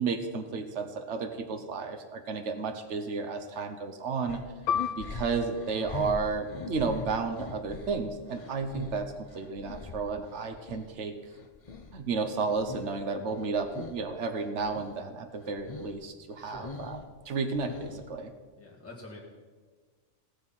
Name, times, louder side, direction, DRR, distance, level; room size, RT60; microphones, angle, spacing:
voice 1, 0.0-4.4 5.0-11.1 11.9-17.0 17.2-18.3, right 4 dB, 70° right, 7 dB, 1.3 m, -32 dB
sound 1, 4.3-10.9 11.3-13.0 13.3-14.0 14.4-15.0 15.3-16.0 16.3-18.2, left 4 dB, 35° left, 0.7 m, -43 dB
Piano, 4.7-9.7 10.0-10.2 11.0-11.3, left 8 dB, 80° left, 1.0 m, -37 dB
voice 2, 16.4-16.7 18.6-19.2, left 2 dB, 10° left, -4 dB, 1.8 m, -46 dB
17.5 x 6.5 x 5.6 m, 1.4 s
omnidirectional pair, 1.3 m